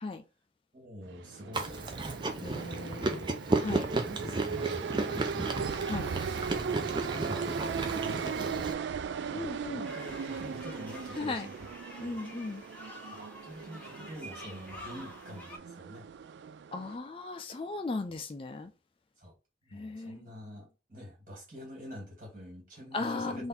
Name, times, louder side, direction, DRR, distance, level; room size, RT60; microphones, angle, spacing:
voice 1, 0.7-2.3 3.0-3.3 3.9-6.5 6.7-8.8 9.3-12.2 12.7-12.8 13.1-16.0 19.2-19.3 19.6-23.5, equal, 45° right, 2.3 m, -46 dB
sound 1, 1.0-17.0, right 6 dB, 80° right, 0.3 m, -38 dB
Chewing mastication, 1.5-8.7, right 2 dB, 25° right, 0.5 m, -33 dB
voice 2, 2.4-3.2 3.6-3.9 5.9-6.1 9.3-9.9 11.2-11.5 12.0-12.6 16.7-18.7 19.7-20.2 22.9-23.5, left 3 dB, 30° left, 0.4 m, -36 dB
sound 2, 9.8-15.6, left 1 dB, 10° left, 1.0 m, -48 dB
3.9 x 2.6 x 4.2 m
head